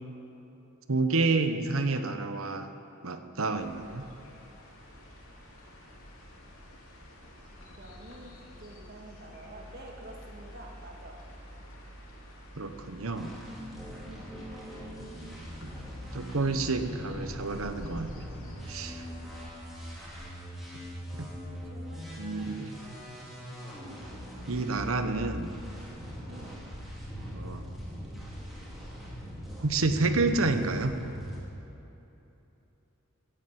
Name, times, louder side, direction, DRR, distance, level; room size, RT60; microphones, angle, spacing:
voice 1, 0.9-2.7 3.0-4.0 12.6-13.3 15.6-15.7 16.1-18.1 18.4-19.0 21.1-21.3 22.2-22.7 24.5-25.5 27.2-27.7 29.6-31.0, right 3 dB, 80° right, 8 dB, 1.1 m, -29 dB
sound 1, 3.6-19.4, equal, 80° left, 2.8 m, -49 dB
voice 2, 7.7-11.2 14.1-14.4 21.5-22.1 26.3-26.7, right 1 dB, 50° right, 0 dB, 2.2 m, -48 dB
sound 2, 13.1-31.4, equal, ahead, 3.8 m, -41 dB
15.5 x 10.0 x 7.9 m, 2.9 s
head